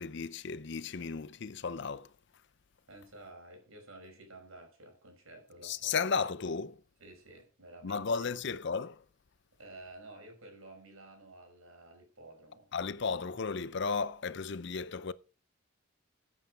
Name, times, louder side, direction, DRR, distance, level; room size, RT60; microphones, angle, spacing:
voice 1, 0.0-2.1 5.6-6.8 7.8-9.0 12.7-15.1, left 5 dB, 55° left, 0.5 m, -34 dB
voice 2, 2.9-6.0 7.0-8.3 9.6-12.7, right 2 dB, 75° right, 5.4 m, -52 dB
15.0 x 8.1 x 4.6 m
head